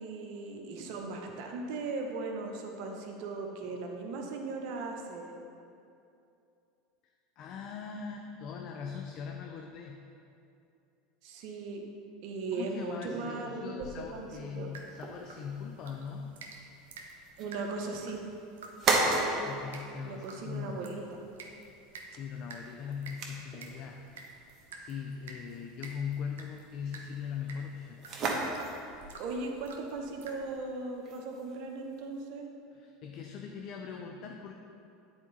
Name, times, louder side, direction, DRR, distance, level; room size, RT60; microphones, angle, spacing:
voice 1, 0.0-5.3 11.2-11.8 12.2-14.7 17.4-18.2 19.0-19.4 20.0-21.2 29.2-32.5, right 3 dB, 60° right, 2 dB, 1.0 m, -38 dB
voice 2, 7.4-10.0 12.5-16.3 19.3-20.9 22.1-24.0 24.7-28.0 32.7-34.5, left 6 dB, 50° left, 2 dB, 0.5 m, -40 dB
sound 1, 13.8-32.2, right 3 dB, 40° right, 1.2 m, -38 dB
Dripping Fast A, 14.7-30.6, right 3 dB, 80° right, 0.7 m, -51 dB
8.9 x 4.4 x 4.1 m, 2.6 s
hypercardioid pair, 85°, 0 cm